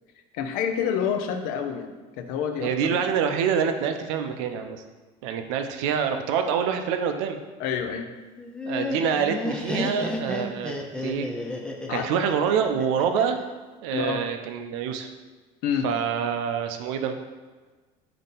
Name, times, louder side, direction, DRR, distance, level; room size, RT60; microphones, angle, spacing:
voice 1, 0.3-3.0 7.6-8.1 11.9-12.1 13.9-14.2 15.6-15.9, left 7 dB, 70° left, 6 dB, 0.5 m, -28 dB
voice 2, 2.6-4.8 5.2-7.4 8.7-10.7 11.0-11.3 11.9-13.4 13.8-15.1 15.8-17.2, right 7 dB, 85° right, 6 dB, 0.4 m, -26 dB
Laughter, 8.4-13.4, left 2 dB, 5° left, 0.3 m, -32 dB
3.7 x 2.7 x 3.8 m, 1.3 s
cardioid pair, 125°, 15 cm